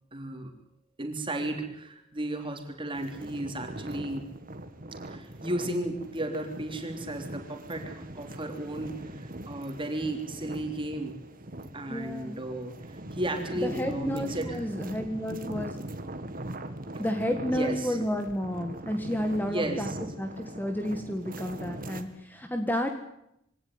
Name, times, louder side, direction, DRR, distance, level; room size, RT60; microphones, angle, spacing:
voice 1, 0.1-0.5 1.0-4.3 5.1-8.9 9.5-11.2 11.7-12.7 13.1-14.6 17.5-18.0 19.5-20.0, right 1 dB, 25° right, 4 dB, 3.6 m, -34 dB
sound 1, 2.9-22.0, right 1 dB, 45° right, 2.0 m, -41 dB
voice 2, 11.9-12.4 13.6-15.7 17.0-19.9 20.2-22.9, equal, 10° left, 5 dB, 1.7 m, -31 dB
23.5 x 17.5 x 9.5 m, 0.81 s
head